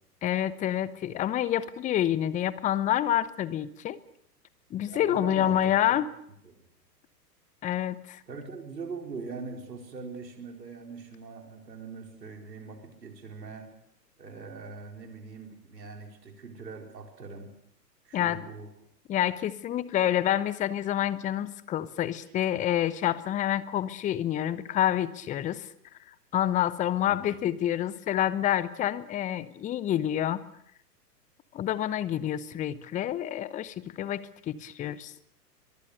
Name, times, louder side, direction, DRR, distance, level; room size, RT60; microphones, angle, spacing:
voice 1, 0.2-4.0 4.7-6.1 7.6-8.2 18.1-18.4 19.1-25.7 26.3-30.4 31.5-35.1, left 11 dB, 15° left, 17 dB, 0.8 m, -28 dB
voice 2, 4.9-6.0 6.4-6.6 8.3-13.7 14.2-17.5 18.0-18.7 27.1-27.4, right 4 dB, 80° right, 3 dB, 4.7 m, -42 dB
23.5 x 22.5 x 6.7 m, 0.72 s
figure-of-eight pair, 110°, 50 cm